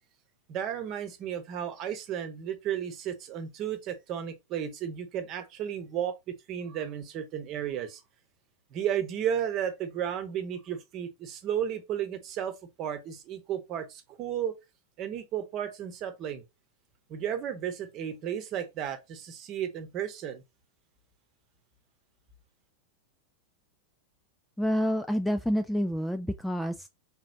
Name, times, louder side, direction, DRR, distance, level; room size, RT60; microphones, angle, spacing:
voice 1, 0.5-6.1 6.5-8.0 8.7-14.5 15.0-16.4 17.1-20.4, right 9 dB, 35° right, 0.9 m, -33 dB
voice 2, 24.6-26.9, equal, 5° left, 0.3 m, -28 dB
3.7 x 3.0 x 2.7 m
figure-of-eight pair, 90°, 0 cm